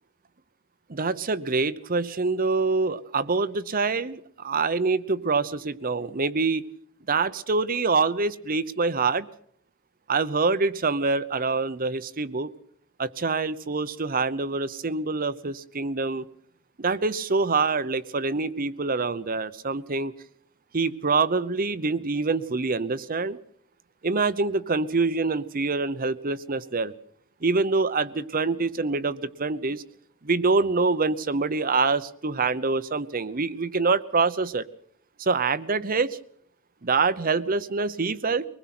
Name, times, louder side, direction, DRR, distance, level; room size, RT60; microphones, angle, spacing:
voice 1, 0.9-6.7 7.1-9.3 10.1-12.5 13.0-16.2 16.8-20.1 20.7-23.4 24.0-26.9 27.4-29.8 30.2-34.6 35.2-36.2 36.8-38.4, right 4 dB, 40° right, 14 dB, 0.8 m, -25 dB
23.0 x 20.5 x 6.0 m, 0.66 s
head